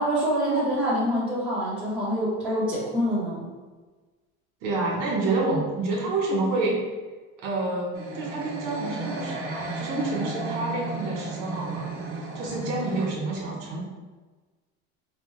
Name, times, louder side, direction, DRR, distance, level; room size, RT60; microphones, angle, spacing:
voice 1, 0.0-3.4, equal, 5° right, -10 dB, 0.9 m, -25 dB
voice 2, 4.6-6.8 7.4-13.8, right 2 dB, 60° right, -2 dB, 1.2 m, -28 dB
sound 1, 7.9-13.1, right 2 dB, 40° right, 0.9 m, -34 dB
4.9 x 2.1 x 3.2 m, 1.3 s
cardioid pair, 155°, 32 cm